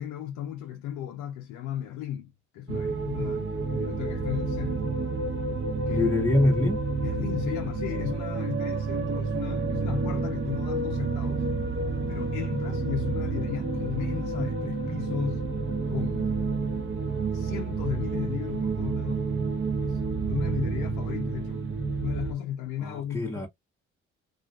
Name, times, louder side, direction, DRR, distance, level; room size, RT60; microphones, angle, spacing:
voice 1, 0.0-5.0 5.9-6.0 7.0-11.4 12.1-15.4 15.9-16.3 17.3-19.2 19.8-23.5, left 11 dB, 85° left, 0.6 m, -36 dB
sound 1, 2.7-22.3, right 4 dB, 40° right, 0.8 m, -29 dB
voice 2, 5.9-6.8 22.8-23.5, left 2 dB, 10° left, 0.6 m, -24 dB
2.4 x 2.3 x 2.2 m
supercardioid pair, 65°, 30 cm